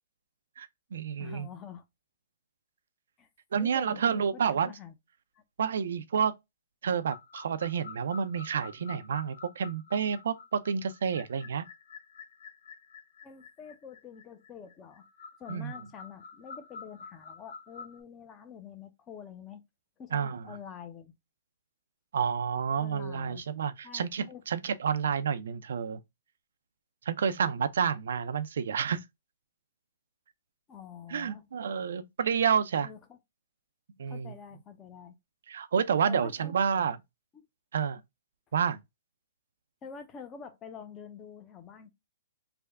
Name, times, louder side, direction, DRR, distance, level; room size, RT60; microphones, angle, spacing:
voice 1, 0.6-1.5 3.5-4.7 5.6-6.3 6.8-11.7 15.5-15.7 20.1-20.4 22.1-26.0 27.1-29.0 31.1-32.9 34.0-34.3 35.5-37.0 37.7-38.0 38.5-38.8, right 7 dB, 70° right, 0.5 m, -29 dB
voice 2, 1.2-1.8 3.2-3.3 3.6-4.3 4.5-4.9 13.2-15.0 15.4-19.6 20.0-21.1 22.8-23.4 23.8-24.4 30.7-31.4 32.8-33.2 34.1-35.2 36.0-36.5 37.3-37.5 39.8-41.9, left 7 dB, 20° left, 0.6 m, -46 dB
sound 1, 6.9-18.0, left 5 dB, 60° left, 0.7 m, -49 dB
3.4 x 2.1 x 3.5 m
hypercardioid pair, 150°, 0 cm